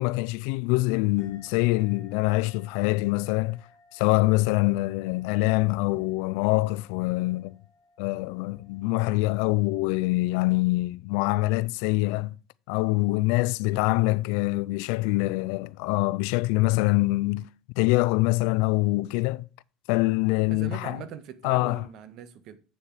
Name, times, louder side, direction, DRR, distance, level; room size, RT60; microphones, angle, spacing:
voice 1, 0.0-3.6 3.9-7.6 8.0-12.4 12.7-17.5 17.8-19.5 19.9-21.0 21.4-21.8, left 21 dB, 75° left, 0.4 m, -24 dB
sound 1, 1.2-10.2, left 2 dB, 55° left, 2.5 m, -60 dB
voice 2, 20.5-22.6, right 10 dB, 55° right, 1.3 m, -41 dB
8.2 x 7.1 x 4.8 m
cardioid pair, 130°, 0 cm